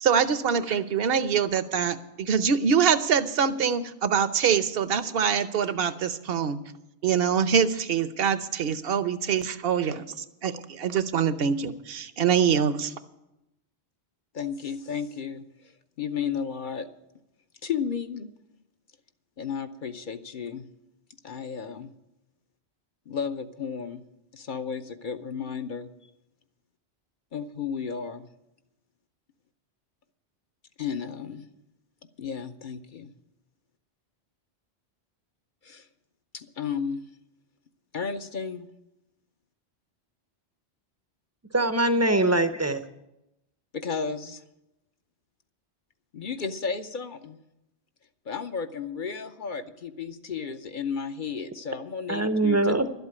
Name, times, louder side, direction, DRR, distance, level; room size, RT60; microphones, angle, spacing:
voice 1, 0.0-6.6 7.0-12.9, right 7 dB, 65° right, 12 dB, 1.0 m, -24 dB
voice 2, 14.3-16.9 17.6-18.3 19.4-20.7 21.2-21.9 23.1-24.0 24.3-26.1 27.3-28.3 30.8-31.4 32.2-33.1 35.6-35.9 36.3-37.1 37.9-38.7 43.7-44.4 46.1-47.4 48.3-52.7, left 6 dB, 50° left, 8 dB, 0.8 m, -33 dB
voice 3, 41.5-42.8 52.1-52.9, right 2 dB, 20° right, 10 dB, 0.5 m, -22 dB
12.0 x 8.1 x 9.6 m, 0.90 s
omnidirectional pair, 1.1 m